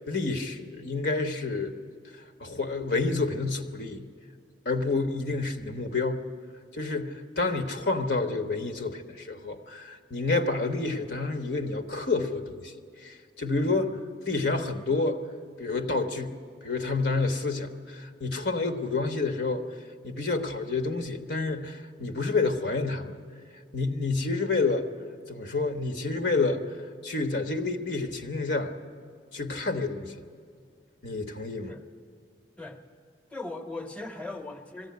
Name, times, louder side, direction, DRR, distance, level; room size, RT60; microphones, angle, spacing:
voice 1, 0.0-1.8 2.4-4.0 4.6-6.3 6.7-12.7 13.0-14.0 14.3-15.2 15.6-19.6 20.0-23.2 23.7-24.9 25.3-26.7 27.0-28.7 29.3-30.2 31.0-31.7, left 3 dB, 65° left, 5 dB, 1.2 m, -29 dB
voice 2, 33.3-34.9, left 2 dB, 5° left, 4 dB, 1.1 m, -39 dB
20.5 x 15.0 x 9.4 m, 2.1 s
head